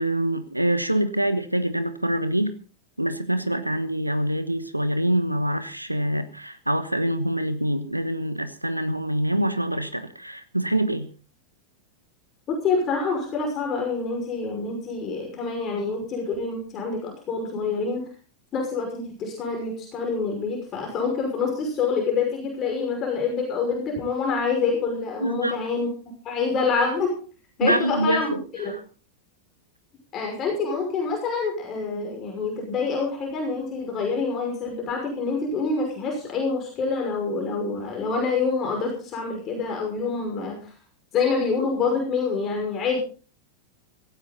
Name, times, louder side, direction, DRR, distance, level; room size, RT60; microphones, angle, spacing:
voice 1, 0.0-2.5 3.0-11.1 25.2-25.6 27.6-28.8, right 1 dB, 85° right, 12 dB, 1.1 m, -25 dB
voice 2, 12.5-18.0 18.5-25.9 26.2-27.1 27.6-28.7 30.1-40.6 41.1-43.0, left 4 dB, 30° left, 2 dB, 5.8 m, -26 dB
17.0 x 15.5 x 4.1 m, 0.39 s
figure-of-eight pair, 90°, 0 cm